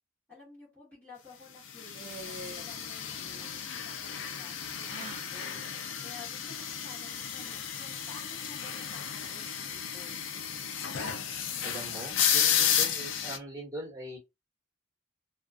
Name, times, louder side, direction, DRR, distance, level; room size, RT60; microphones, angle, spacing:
voice 1, 0.3-5.6 6.0-10.3, left 3 dB, 10° left, 1.2 m, -53 dB
sound 1, 1.8-13.4, left 8 dB, 65° left, 0.4 m, -32 dB
sound 2, 1.9-2.8 3.1-3.6 4.8-5.3, right 2 dB, 35° right, 0.5 m, -45 dB
voice 2, 11.6-14.2, right 1 dB, 15° right, 1.2 m, -41 dB
2.3 x 2.3 x 2.4 m
head